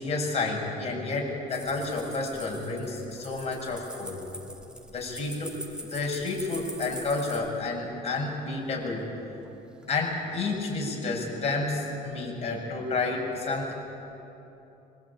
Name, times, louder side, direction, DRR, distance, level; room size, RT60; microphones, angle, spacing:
voice 1, 0.0-4.2 4.9-5.6 5.9-9.1 9.9-13.7, left 3 dB, 40° left, -1 dB, 7.9 m, -30 dB
sound 1, 1.5-7.7 8.0-8.1 9.0-9.5 9.8-10.4, right 1 dB, 5° right, 2.9 m, -43 dB
25.5 x 25.0 x 9.0 m, 3.0 s
cardioid pair, 110°, 17 cm